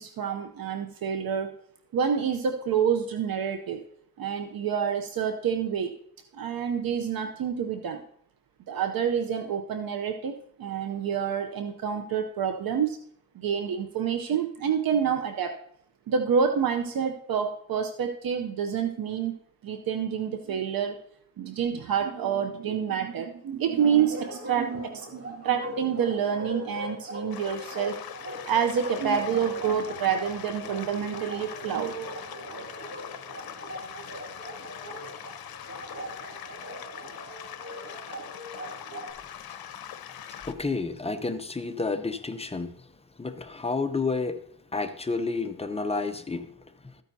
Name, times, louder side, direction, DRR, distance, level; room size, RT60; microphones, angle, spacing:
voice 1, 0.0-1.5 1.9-3.8 4.2-5.9 6.3-8.0 8.7-13.0 13.3-15.6 16.1-19.3 19.6-21.0 21.4-28.0 28.4-32.7, right 7 dB, 70° right, 6 dB, 0.7 m, -28 dB
Bark, 23.8-39.1, equal, 40° right, 2.8 m, -40 dB
sound 1, 27.3-40.5, left 9 dB, 80° left, 0.7 m, -42 dB
voice 2, 40.5-42.7 43.2-44.4 44.7-46.6, left 3 dB, 15° left, 8 dB, 0.6 m, -30 dB
13.5 x 9.1 x 2.7 m, 0.67 s
wide cardioid pair, 115°, 36 cm